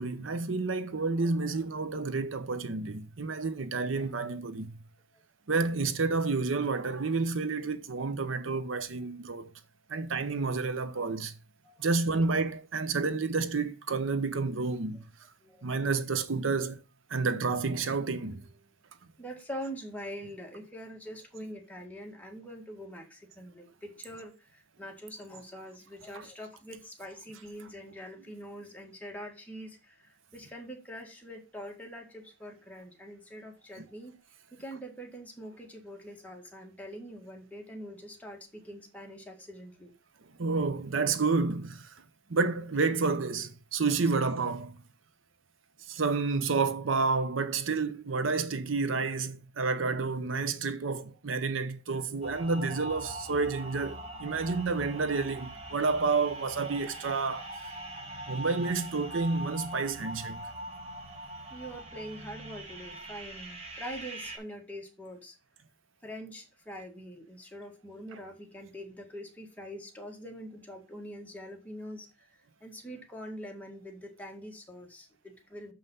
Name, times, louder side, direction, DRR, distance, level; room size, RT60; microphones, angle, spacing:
voice 1, 0.0-4.8 5.5-9.5 9.9-11.3 11.8-15.0 15.6-16.8 17.1-18.4 26.1-26.3 33.8-33.9 40.4-41.9 42.3-44.8 45.9-57.5 58.3-60.4, right 4 dB, 75° right, 0.8 m, -30 dB
voice 2, 19.2-34.1 34.5-39.9 61.5-65.3 66.0-72.1 72.6-75.7, equal, 10° left, 1.9 m, -44 dB
sound 1, 52.2-64.4, right 1 dB, 30° right, 2.3 m, -42 dB
6.9 x 5.6 x 5.4 m
head